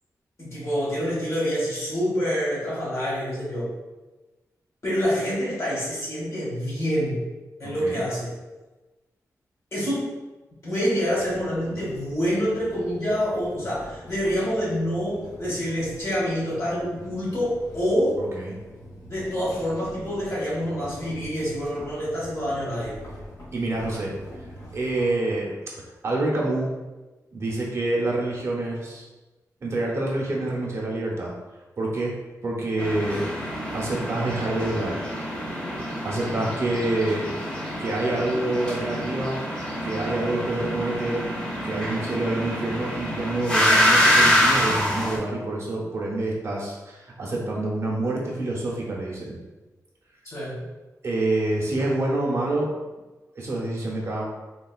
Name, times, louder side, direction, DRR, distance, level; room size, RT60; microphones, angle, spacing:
voice 1, 0.4-3.7 4.8-7.2 7.6-8.3 9.7-10.1 10.6-18.2 19.1-22.9 36.2-36.5 50.2-50.6, equal, 50° left, -7 dB, 1.5 m, -27 dB
voice 2, 7.6-8.0 18.3-18.6 23.5-24.1 24.7-25.6 26.0-26.8 27.3-29.0 29.6-31.3 31.8-32.2 32.4-33.3 33.7-35.0 36.0-37.3 37.8-39.4 39.8-41.3 41.6-49.4 51.0-52.7 53.4-54.3, right 2 dB, 50° right, -3 dB, 0.6 m, -27 dB
sound 1, 11.1-25.1, left 1 dB, 75° left, 1.1 m, -44 dB
sound 2, 32.8-45.2, equal, 15° left, 0.5 m, -25 dB
3.6 x 2.3 x 2.3 m, 1.1 s
wide cardioid pair, 145°, 6 cm